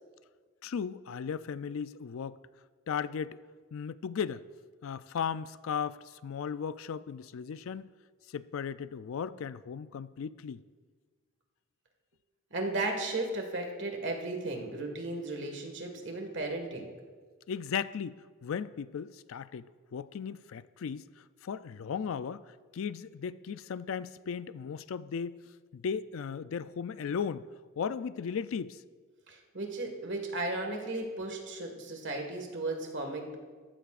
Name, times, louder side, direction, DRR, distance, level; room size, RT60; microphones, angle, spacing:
voice 1, 0.6-2.4 2.9-3.4 3.7-4.4 4.8-7.9 8.3-10.6 17.5-22.4 22.7-25.4 25.7-27.5 27.8-28.8, left 7 dB, 70° left, 15 dB, 0.4 m, -36 dB
voice 2, 12.5-16.9 29.3-33.4, right 2 dB, 55° right, 3 dB, 1.8 m, -35 dB
14.5 x 13.5 x 2.5 m, 1.5 s
head